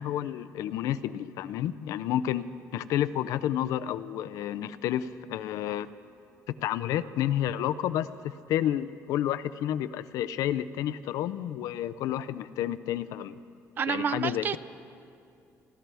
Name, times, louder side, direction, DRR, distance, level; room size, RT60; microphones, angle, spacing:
voice 1, 0.0-2.4 2.7-5.9 6.5-13.4 13.9-14.5, left 11 dB, 85° left, 14 dB, 0.4 m, -30 dB
voice 2, 13.8-14.6, right 7 dB, 35° right, 14 dB, 0.4 m, -29 dB
29.0 x 12.5 x 3.4 m, 2.5 s
cardioid pair, 170°, 6 cm